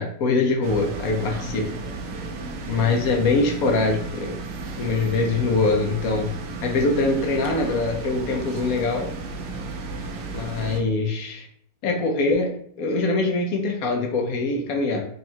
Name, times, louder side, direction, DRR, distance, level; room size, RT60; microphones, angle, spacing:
voice 1, 0.0-1.6 2.7-4.4 4.8-6.3 6.6-9.1 10.3-11.5 11.8-12.5 12.8-15.0, left 3 dB, 65° left, 2 dB, 0.9 m, -23 dB
sound 1, 0.6-10.8, right 3 dB, 65° right, 0.8 m, -34 dB
3.6 x 2.1 x 4.2 m, 0.63 s
omnidirectional pair, 1.9 m